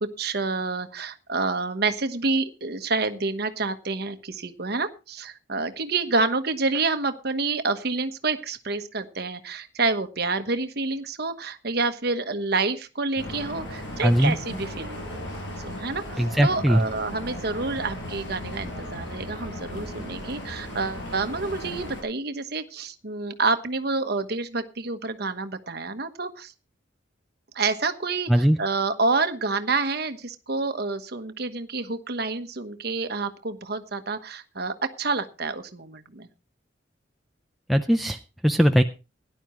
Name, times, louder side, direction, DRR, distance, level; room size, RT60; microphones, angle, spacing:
voice 1, 0.2-15.0 15.6-26.5 27.5-28.3 28.6-36.3, right 3 dB, 55° right, 9 dB, 1.2 m, -28 dB
sound 1, 13.2-22.0, left 1 dB, 70° left, 5.8 m, -36 dB
voice 2, 14.0-14.4 16.2-16.8 28.3-28.6 37.7-38.8, equal, ahead, 4 dB, 0.5 m, -20 dB
17.0 x 11.0 x 3.1 m, 0.29 s
head